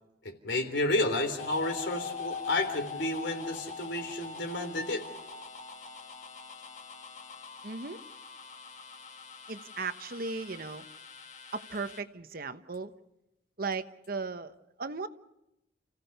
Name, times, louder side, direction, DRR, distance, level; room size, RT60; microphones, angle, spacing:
voice 1, 0.2-5.0, left 2 dB, 70° left, 6 dB, 3.6 m, -31 dB
sound 1, 1.4-12.0, left 5 dB, 40° left, 1.6 m, -43 dB
voice 2, 7.6-8.0 9.5-10.8 11.5-12.9 13.6-15.1, right 4 dB, 50° right, 10 dB, 1.0 m, -36 dB
30.0 x 16.5 x 6.7 m, 0.88 s
head